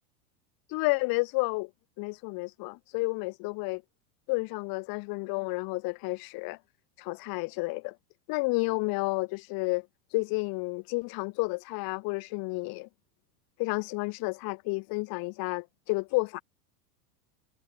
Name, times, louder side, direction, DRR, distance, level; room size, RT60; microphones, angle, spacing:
voice 1, 0.7-1.7 2.0-3.8 4.3-6.6 7.0-7.9 8.3-9.9 10.1-12.9 13.6-16.4, left 27 dB, 50° left, 4.6 m, -31 dB
supercardioid pair, 130°, 46 cm